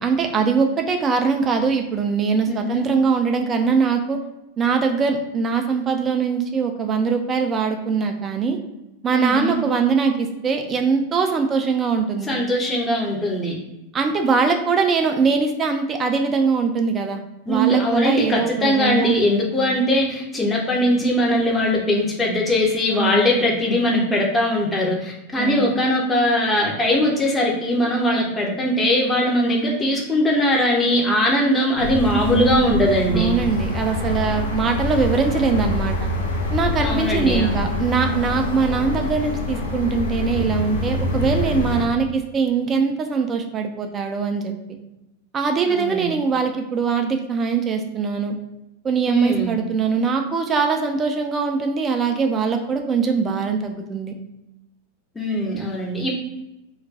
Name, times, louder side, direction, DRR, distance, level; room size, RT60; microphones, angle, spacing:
voice 1, 0.0-4.2 4.6-8.6 9.0-12.3 13.9-17.2 17.5-19.2 22.9-23.3 25.4-25.7 32.3-32.8 33.1-36.1 36.5-44.5 45.3-48.3 48.8-54.1, right 5 dB, 25° right, 4 dB, 0.4 m, -22 dB
voice 2, 2.5-2.9 9.1-9.6 12.3-13.5 17.5-33.3 36.8-37.6 45.7-46.2 49.1-49.5 55.1-56.1, left 1 dB, 10° left, -2 dB, 0.7 m, -20 dB
sound 1, 31.8-41.8, left 2 dB, 65° left, 0.5 m, -25 dB
2.3 x 2.2 x 3.8 m, 0.93 s
figure-of-eight pair, 90°, 0 cm